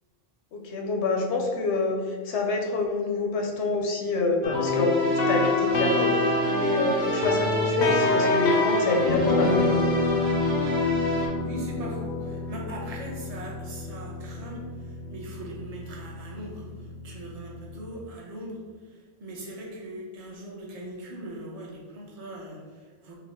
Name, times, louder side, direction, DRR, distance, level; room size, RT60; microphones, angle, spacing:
voice 1, 0.5-6.1 6.5-9.9, left 3 dB, 85° left, 1 dB, 1.0 m, -27 dB
sound 1, 4.4-17.9, left 2 dB, 55° left, 0.6 m, -28 dB
sound 2, 4.7-11.3, left 3 dB, 70° right, 1.3 m, -28 dB
voice 2, 11.1-23.1, right 1 dB, 35° right, -2 dB, 0.8 m, -40 dB
5.5 x 2.1 x 3.6 m, 1.5 s
omnidirectional pair, 1.1 m